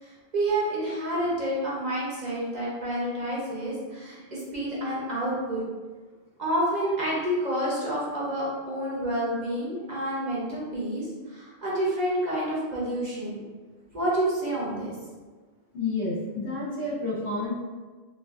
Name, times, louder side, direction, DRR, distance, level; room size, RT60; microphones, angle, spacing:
voice 1, 0.0-5.6 6.4-13.4 13.9-15.0, right 1 dB, 45° right, -6 dB, 0.9 m, -29 dB
voice 2, 15.7-17.5, left 2 dB, 75° left, -11 dB, 1.8 m, -30 dB
3.8 x 2.4 x 2.4 m, 1.4 s
omnidirectional pair, 1.1 m